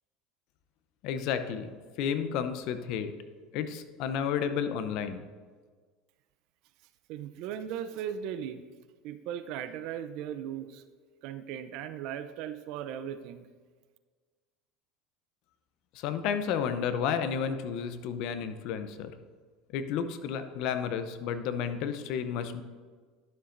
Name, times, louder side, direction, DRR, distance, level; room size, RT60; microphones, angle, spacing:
voice 1, 1.0-1.7 2.0-3.1 3.5-5.3 15.9-19.1 19.7-22.6, left 7 dB, 65° left, 10 dB, 0.7 m, -31 dB
voice 2, 7.1-8.6 9.0-10.8 11.2-13.5, right 9 dB, 65° right, 11 dB, 0.6 m, -37 dB
12.0 x 7.0 x 2.6 m, 1.5 s
supercardioid pair, 100°, 0 cm